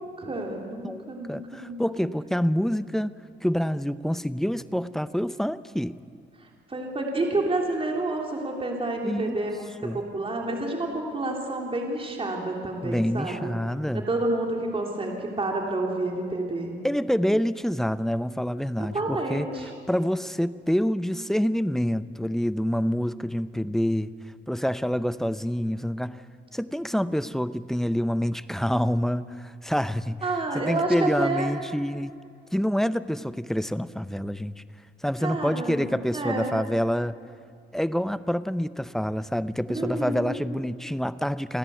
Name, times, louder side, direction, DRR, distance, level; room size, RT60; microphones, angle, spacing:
voice 1, 0.0-1.8 6.7-9.7 9.9-13.5 13.9-16.7 18.9-19.7 30.2-31.5 35.2-35.8 36.1-36.5 39.7-40.4, right 2 dB, 30° right, 0 dB, 3.2 m, -29 dB
voice 2, 1.3-3.2 3.4-6.0 9.0-9.3 9.8-10.0 12.8-14.1 16.8-19.5 19.9-24.1 24.5-26.2 26.5-30.2 30.5-32.1 32.5-34.6 35.0-37.2 37.7-41.6, equal, ahead, 15 dB, 0.6 m, -27 dB
29.0 x 11.0 x 8.2 m, 2.3 s
cardioid pair, 90°, 20 cm